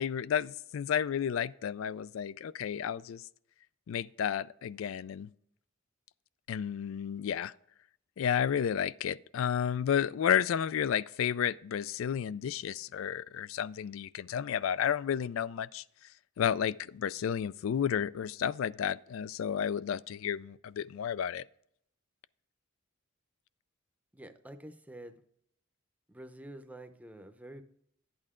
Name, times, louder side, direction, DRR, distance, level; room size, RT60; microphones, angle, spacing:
voice 1, 0.0-3.3 3.9-5.3 6.5-7.5 8.2-15.8 16.4-21.4, left 8 dB, 70° left, 0.3 m, -32 dB
voice 2, 24.1-25.2 26.1-27.6, right 1 dB, 5° right, 0.7 m, -48 dB
11.5 x 8.7 x 3.7 m
head